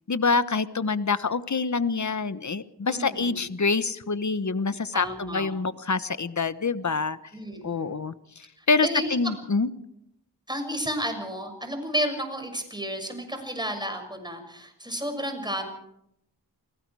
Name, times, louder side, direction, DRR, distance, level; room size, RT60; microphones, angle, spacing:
voice 1, 0.1-7.2 7.6-9.7, left 4 dB, 45° left, 13 dB, 1.2 m, -26 dB
voice 2, 2.9-3.4 4.9-5.5 7.3-8.0 8.6-9.3 10.5-15.7, equal, 10° right, 5 dB, 6.7 m, -32 dB
29.5 x 19.0 x 4.8 m, 0.78 s
wide cardioid pair, 60°, 40 cm